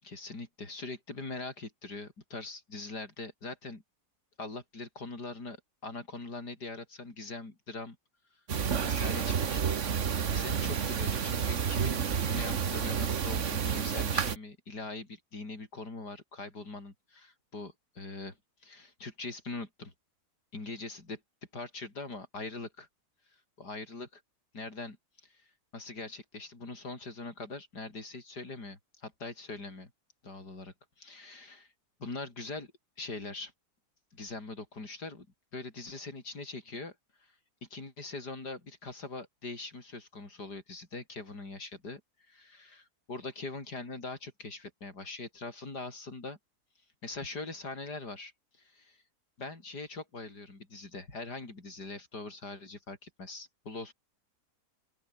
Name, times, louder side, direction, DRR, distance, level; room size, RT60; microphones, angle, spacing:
voice 1, 0.0-3.8 4.4-5.6 5.8-8.0 8.8-9.6 10.3-18.4 18.6-19.9 20.5-21.2 21.5-22.9 23.6-24.1 24.5-25.0 25.2-25.5 25.7-29.9 30.2-31.7 32.0-32.7 33.0-33.5 34.1-35.3 35.5-37.0 37.2-37.3 37.6-42.0 42.3-46.4 47.0-48.3 48.6-49.0 49.4-53.9, left 3 dB, 90° left, 5.4 m, -42 dB
sound 1, 8.5-14.4, right 7 dB, 50° right, 1.5 m, -30 dB
open air
omnidirectional pair, 1.7 m